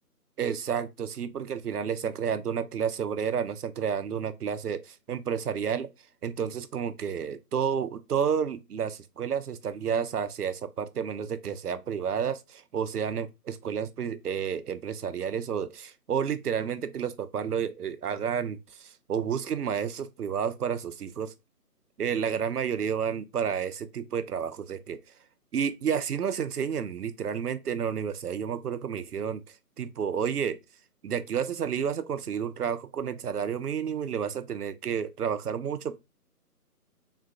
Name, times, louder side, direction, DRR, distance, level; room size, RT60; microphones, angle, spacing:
voice 1, 0.4-5.9 6.2-21.3 22.0-25.0 25.5-29.4 29.8-30.6 31.0-36.0, right 7 dB, 75° right, 0.6 m, -30 dB
3.7 x 2.1 x 2.6 m
figure-of-eight pair, 160°, 47 cm